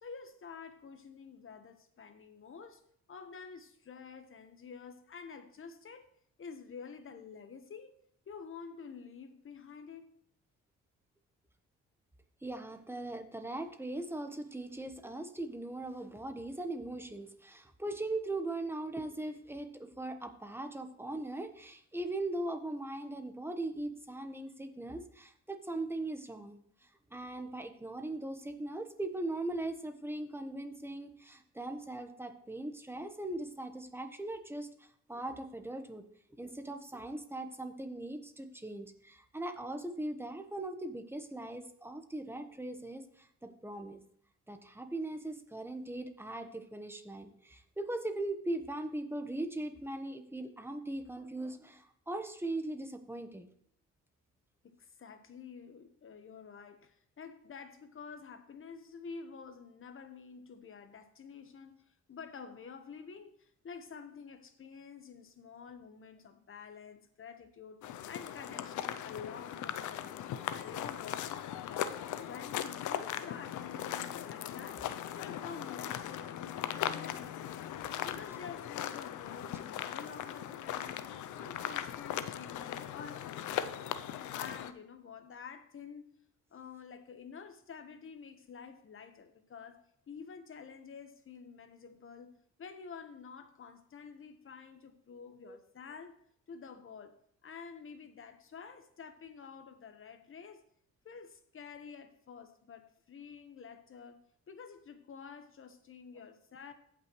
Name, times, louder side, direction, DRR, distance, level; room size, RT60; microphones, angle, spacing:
voice 1, 0.0-2.8 3.1-6.1 6.4-8.0 8.3-10.2 54.6-67.8 68.1-71.6 72.2-77.8 78.0-84.0 84.3-86.1 86.5-89.8 90.1-96.2 96.5-100.6 101.0-106.7, left 6 dB, 45° left, 1.2 m, -49 dB
voice 2, 12.4-26.6 27.1-36.0 36.4-44.0 44.5-53.5 95.5-95.6, right 2 dB, 10° right, 1.1 m, -40 dB
sound 1, 67.8-84.7, left 10 dB, 75° left, 0.6 m, -39 dB
16.0 x 5.9 x 3.1 m
cardioid pair, 90°, 30 cm